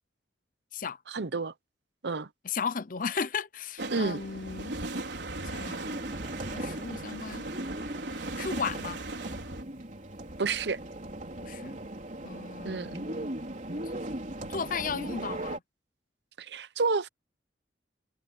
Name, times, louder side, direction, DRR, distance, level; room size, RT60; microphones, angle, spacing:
voice 1, 1.1-1.5 2.0-2.3 3.9-4.2 10.4-10.8 12.6-12.9 16.4-17.1, right 4 dB, 75° right, 0.8 m, -30 dB
voice 2, 2.4-4.7 5.4-5.9 6.5-7.5 8.4-9.0 11.4-11.8 12.2-13.3 13.8-13.9 14.5-15.6, left 5 dB, 50° left, 0.7 m, -35 dB
sound 1, 3.8-9.6, right 2 dB, 90° right, 4.3 m, -38 dB
sound 2, 5.8-15.6, right 1 dB, 45° right, 3.6 m, -39 dB
head